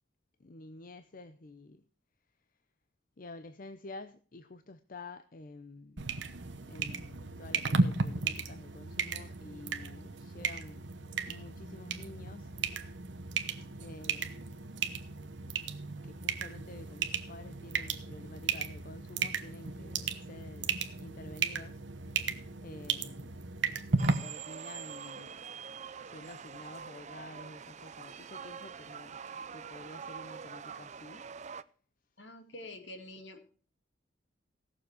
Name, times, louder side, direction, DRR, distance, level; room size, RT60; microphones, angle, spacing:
voice 1, 0.4-1.8 3.2-6.1 6.7-10.9 11.3-12.5 13.8-14.4 16.0-21.8 22.6-23.4 24.1-25.4 26.0-29.2 29.5-31.3, left 2 dB, 45° left, 0.6 m, -49 dB
sound 1, 6.0-24.1, right 4 dB, 70° right, 1.1 m, -35 dB
sound 2, 24.0-31.6, right 6 dB, 40° right, 0.5 m, -45 dB
voice 2, 32.2-33.4, left 1 dB, 70° left, 2.3 m, -46 dB
17.0 x 7.1 x 4.8 m
head